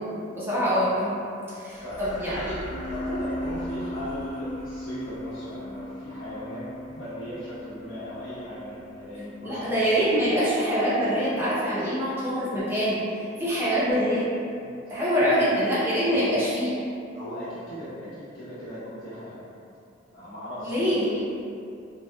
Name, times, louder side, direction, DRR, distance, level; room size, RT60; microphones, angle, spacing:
voice 1, 0.0-2.6 9.4-13.0 13.4-14.3 14.9-16.7 20.6-21.3, equal, 10° right, -10 dB, 0.6 m, -25 dB
sound 1, 1.7-10.3, equal, 40° left, 0.9 m, -45 dB
voice 2, 1.8-2.5 2.9-9.8 14.9-15.4 16.1-16.4 17.1-19.5 20.1-20.9, equal, 85° left, -11 dB, 1.0 m, -38 dB
sound 2, 2.7-12.2, left 1 dB, 75° right, 0.5 m, -39 dB
2.8 x 2.2 x 2.2 m, 2.5 s
head